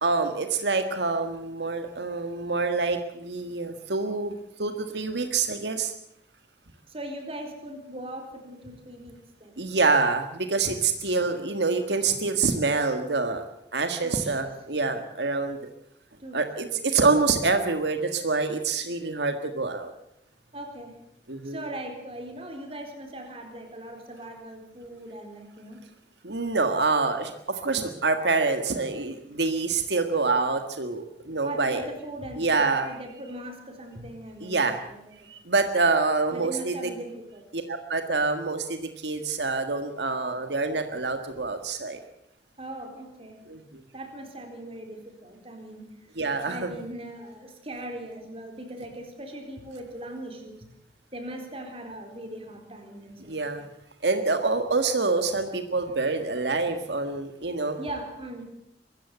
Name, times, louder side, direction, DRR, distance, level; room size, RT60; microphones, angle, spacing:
voice 1, 0.0-5.9 9.6-13.4 13.7-15.6 16.3-19.9 21.3-21.6 26.2-31.8 32.4-33.0 34.4-34.8 35.3-36.9 37.5-42.0 43.5-43.8 46.1-46.7 53.2-53.7 54.0-57.8, right 3 dB, 85° right, 7 dB, 1.7 m, -26 dB
voice 2, 6.9-9.1 9.4-9.5 14.0-14.3 16.2-16.8 20.5-20.9 21.5-25.8 31.4-35.0 36.3-37.5 42.6-43.4 43.9-46.0 46.5-50.7 51.1-53.5 57.8-58.5, right 1 dB, 35° right, 4 dB, 4.0 m, -40 dB
23.5 x 14.0 x 8.2 m, 0.79 s
head